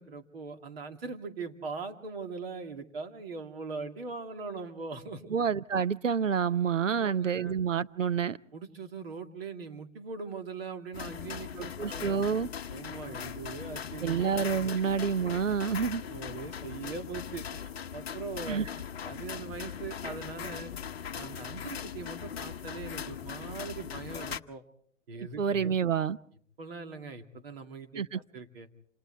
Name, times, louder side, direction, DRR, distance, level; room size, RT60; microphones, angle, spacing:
voice 1, 0.0-5.4 6.9-7.5 8.5-12.2 12.7-14.3 16.0-18.6 19.0-20.7 21.1-24.6 25.1-25.7 26.6-28.7, right 4 dB, 50° right, 2.5 m, -41 dB
voice 2, 5.3-8.4 11.6-12.5 14.0-16.0 18.5-18.7 25.4-26.2 28.0-28.2, right 7 dB, 75° right, 0.8 m, -28 dB
sound 1, 10.9-24.4, left 8 dB, 55° left, 0.9 m, -40 dB
29.0 x 27.5 x 3.4 m
figure-of-eight pair, 130°, 38 cm